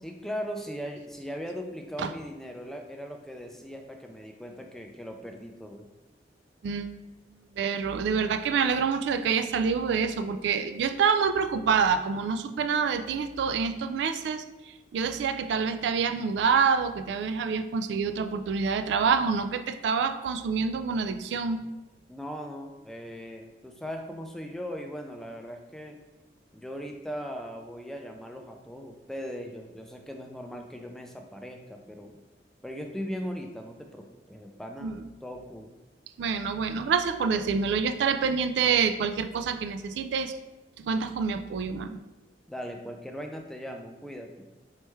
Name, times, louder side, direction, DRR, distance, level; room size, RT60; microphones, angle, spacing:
voice 1, 0.0-5.9 22.1-26.0 26.5-32.2 32.6-35.7 42.5-44.5, equal, ahead, 3 dB, 0.3 m, -39 dB
voice 2, 6.6-6.9 7.6-21.7 34.8-35.0 36.2-40.3 40.8-42.0, right 6 dB, 80° right, 9 dB, 0.3 m, -27 dB
4.5 x 3.2 x 3.1 m, 1.1 s
head